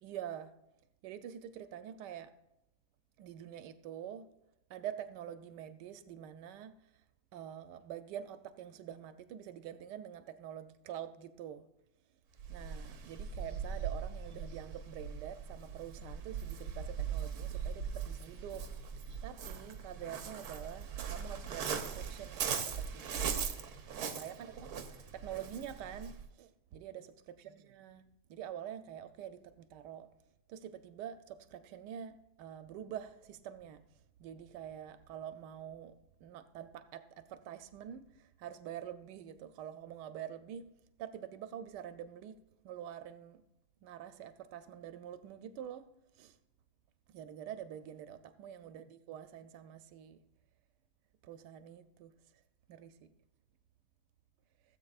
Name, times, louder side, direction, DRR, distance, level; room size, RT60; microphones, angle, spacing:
voice 1, 0.0-0.5 1.0-2.3 3.2-4.3 4.7-6.8 7.3-11.7 12.5-18.7 19.2-23.1 24.0-24.7 25.1-30.1 30.5-33.8 34.2-40.7 41.0-42.4 42.6-43.4 43.8-45.9 46.1-46.4 47.1-50.2 51.2-52.1 52.7-53.1, right 10 dB, 90° right, 1.2 m, -46 dB
Waves surf, 12.4-26.3, right 7 dB, 70° right, 1.3 m, -40 dB
16.5 x 7.8 x 2.4 m
omnidirectional pair, 1.8 m